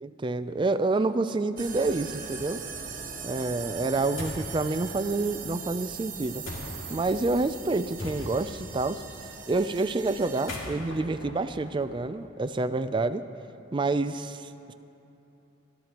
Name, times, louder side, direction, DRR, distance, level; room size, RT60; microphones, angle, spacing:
voice 1, 0.0-2.6 3.2-6.4 6.9-9.0 9.5-13.2 13.7-14.7, right 3 dB, 25° right, 11 dB, 0.4 m, -28 dB
sound 1, 1.6-10.5, right 6 dB, 40° right, 1.3 m, -40 dB
sound 2, 4.2-4.5 6.4-7.0 8.0-8.6 10.3-12.2, left 1 dB, 75° left, 2.5 m, -39 dB
29.5 x 12.5 x 3.0 m, 2.8 s
head